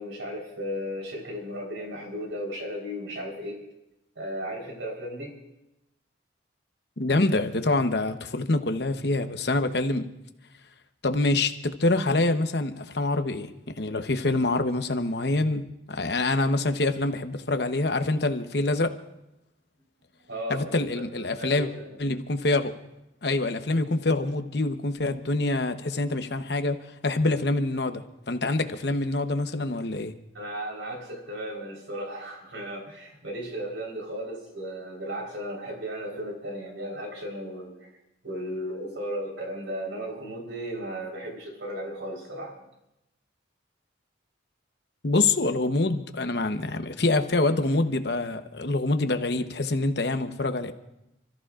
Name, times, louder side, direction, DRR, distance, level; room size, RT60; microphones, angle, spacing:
voice 1, 0.0-3.6 4.2-5.3 20.3-20.7 21.4-22.0 30.3-37.9 38.2-42.5, equal, 80° right, 4.1 m, -35 dB
voice 2, 7.0-10.1 11.0-13.5 13.8-15.6 15.9-18.9 20.5-21.7 22.0-22.7 23.2-30.1 45.0-50.7, left 2 dB, 60° left, 1.0 m, -25 dB
30.0 x 14.5 x 2.5 m
head